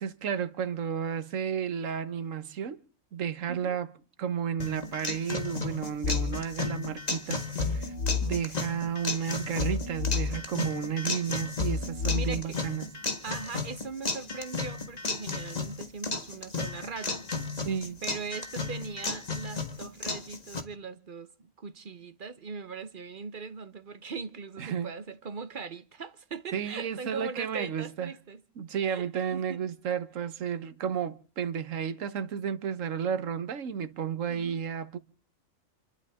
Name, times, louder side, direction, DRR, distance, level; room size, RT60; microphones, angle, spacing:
voice 1, 0.0-2.8 3.1-3.9 4.2-7.9 8.2-12.9 17.6-18.0 24.6-24.9 26.5-28.1 28.6-35.0, right 8 dB, 70° right, 1.4 m, -32 dB
sound 1, 4.6-20.6, left 3 dB, 30° left, 1.6 m, -34 dB
sound 2, 6.0-6.4 7.6-8.4 9.6-10.4 11.6-12.4, left 5 dB, 75° left, 2.5 m, -30 dB
voice 2, 12.1-12.6 13.2-17.2 18.0-21.3 21.6-28.4 28.9-29.6 34.3-34.6, right 5 dB, 40° right, 1.1 m, -40 dB
28.0 x 12.0 x 3.6 m
omnidirectional pair, 1.4 m